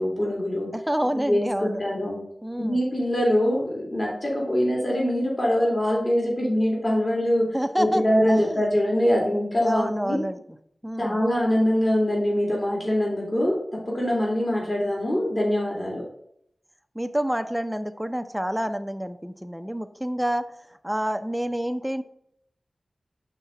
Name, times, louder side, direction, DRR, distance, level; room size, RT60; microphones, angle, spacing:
voice 1, 0.0-0.7 1.3-2.2 2.6-7.5 7.8-10.2 11.0-16.0, equal, 40° left, -3 dB, 2.2 m, -23 dB
voice 2, 0.7-1.8 2.4-2.8 7.5-8.6 9.6-10.4 10.8-11.2 16.9-20.5 20.8-22.0, equal, 5° right, 8 dB, 0.5 m, -28 dB
5.6 x 3.6 x 5.7 m, 0.72 s
wide cardioid pair, 55°, 0 cm